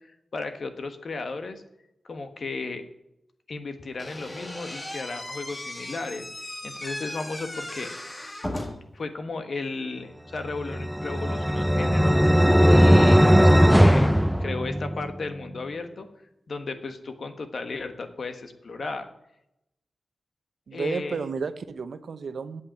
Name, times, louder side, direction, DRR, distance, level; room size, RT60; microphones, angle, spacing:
voice 1, 0.3-1.6 2.1-2.8 3.5-6.3 6.6-7.9 8.9-12.2 12.7-14.1 14.4-16.1 16.5-19.1 20.7-21.2, left 3 dB, 60° left, 8 dB, 1.3 m, -34 dB
Slam / Squeak, 4.0-9.0, left 1 dB, 20° left, 1.5 m, -37 dB
sound 1, 10.6-15.2, equal, ahead, 0.4 m, -18 dB
voice 2, 20.7-22.6, right 5 dB, 80° right, 11 dB, 0.8 m, -32 dB
8.7 x 8.0 x 8.8 m, 0.85 s
wide cardioid pair, 130°, 0 cm